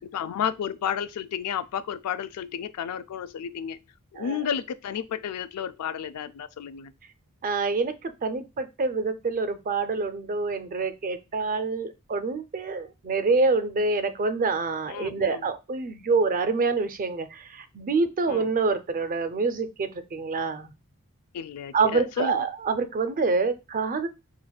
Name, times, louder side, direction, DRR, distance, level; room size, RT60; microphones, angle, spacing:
voice 1, 0.1-3.8 4.1-6.9 14.9-15.4 18.3-18.5 21.3-22.4, left 8 dB, 80° left, 0.3 m, -32 dB
voice 2, 7.4-20.7 21.7-24.1, right 4 dB, 40° right, 0.4 m, -26 dB
5.7 x 2.5 x 2.2 m
head